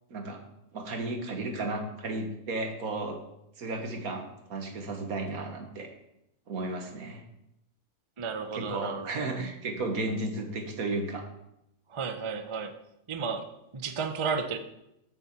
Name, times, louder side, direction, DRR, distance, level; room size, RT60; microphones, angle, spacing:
voice 1, 0.1-0.4 0.7-3.2 3.6-5.9 6.5-7.2 8.5-11.3, right 2 dB, 75° right, 4 dB, 1.8 m, -34 dB
voice 2, 8.2-9.4 11.9-12.7 13.1-14.6, right 5 dB, 30° right, 8 dB, 0.6 m, -33 dB
7.7 x 7.1 x 7.1 m, 0.84 s
omnidirectional pair, 1.5 m